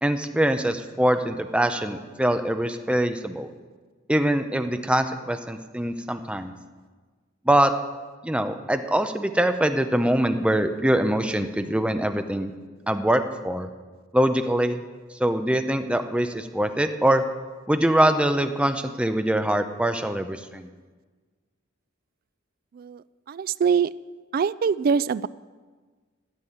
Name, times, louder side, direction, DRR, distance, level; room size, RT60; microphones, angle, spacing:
voice 1, 0.0-3.5 4.1-6.5 7.5-7.7 8.2-12.5 12.9-13.7 14.1-14.8 15.2-17.2 17.7-20.7, right 1 dB, 5° right, 7 dB, 0.6 m, -23 dB
voice 2, 22.7-23.9 24.3-25.3, right 6 dB, 45° right, 18 dB, 0.3 m, -24 dB
13.5 x 6.1 x 9.3 m, 1.4 s
head